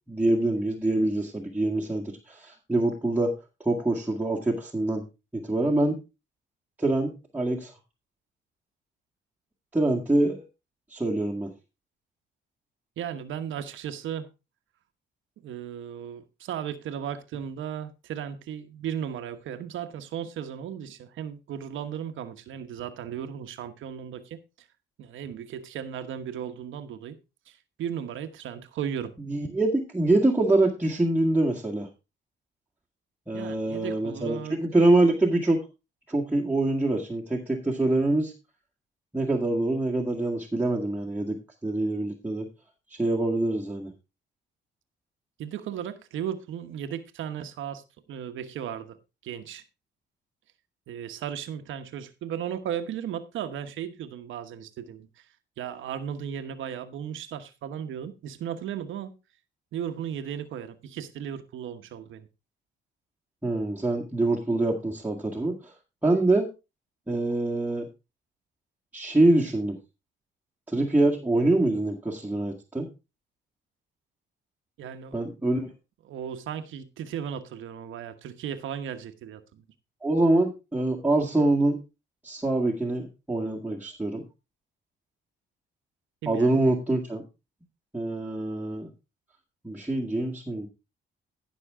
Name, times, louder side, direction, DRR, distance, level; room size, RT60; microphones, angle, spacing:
voice 1, 0.1-3.3 3.6-5.0 5.3-6.0 6.8-7.7 9.7-10.4 10.9-11.5 29.2-31.9 33.3-35.6 36.1-38.3 39.1-42.5 42.9-43.9 63.4-65.7 66.0-66.5 67.1-67.9 68.9-69.8 70.7-72.9 75.1-75.7 80.0-81.8 82.2-84.2 86.3-87.2 87.9-88.9 89.6-90.7, right 2 dB, 10° right, 1.9 m, -25 dB
voice 2, 13.0-14.3 15.4-24.4 25.0-27.2 27.5-29.1 33.3-34.6 45.4-47.8 48.1-49.0 49.2-49.6 50.9-55.3 55.6-59.1 59.7-62.3 74.8-75.2 76.0-79.6 86.2-86.6, right 9 dB, 80° right, 1.2 m, -36 dB
15.0 x 6.2 x 3.6 m
cardioid pair, 90°, 20 cm